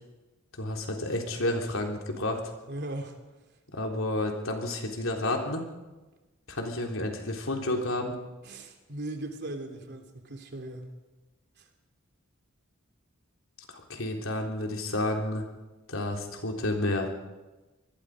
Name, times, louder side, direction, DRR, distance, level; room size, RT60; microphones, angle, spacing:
voice 1, 0.6-2.4 3.7-5.6 6.5-8.2 13.7-15.5 15.9-17.1, left 1 dB, 80° left, 2 dB, 3.7 m, -30 dB
voice 2, 2.7-3.2 8.4-11.0, right 1 dB, 55° right, 4 dB, 3.2 m, -38 dB
25.5 x 20.0 x 5.0 m, 1.1 s
head